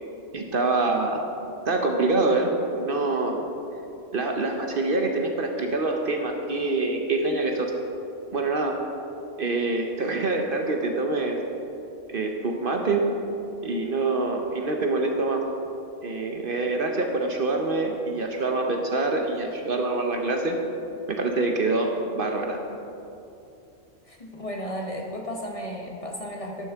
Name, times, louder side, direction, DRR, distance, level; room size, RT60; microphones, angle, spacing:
voice 1, 0.3-1.2 1.7-2.5 2.8-3.4 4.1-7.7 8.3-8.8 9.4-11.4 12.1-13.1 13.6-15.4 16.0-20.6 21.1-22.6, right 3 dB, 50° right, 2 dB, 0.9 m, -25 dB
voice 2, 24.0-26.7, equal, 30° left, 0 dB, 0.9 m, -34 dB
12.0 x 10.0 x 3.5 m, 2.8 s
omnidirectional pair, 1.3 m